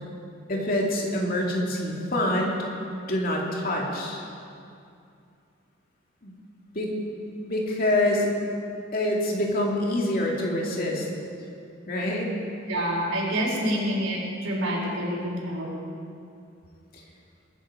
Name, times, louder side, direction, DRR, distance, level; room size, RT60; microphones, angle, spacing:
voice 1, 0.5-2.6 3.1-4.2 6.2-6.3 6.7-7.0 7.4-8.3 8.9-11.1 11.9-12.3, left 1 dB, 45° left, -2 dB, 2.4 m, -26 dB
voice 2, 12.7-15.7, equal, 90° right, -4 dB, 4.3 m, -27 dB
21.5 x 9.9 x 5.0 m, 2.5 s
head